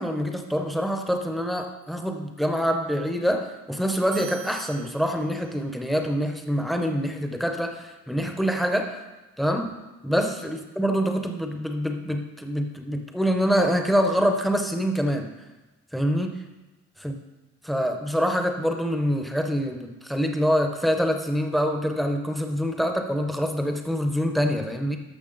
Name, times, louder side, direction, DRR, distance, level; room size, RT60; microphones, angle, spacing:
voice 1, 0.0-9.0 9.4-9.7 10.0-15.3 15.9-16.4 17.0-17.1 17.6-25.0, equal, ahead, 4 dB, 0.7 m, -25 dB
sound 1, 4.1-5.7, right 6 dB, 85° right, 1.7 m, -43 dB
12.5 x 6.3 x 3.9 m, 1.1 s
wide cardioid pair, 175°, 29 cm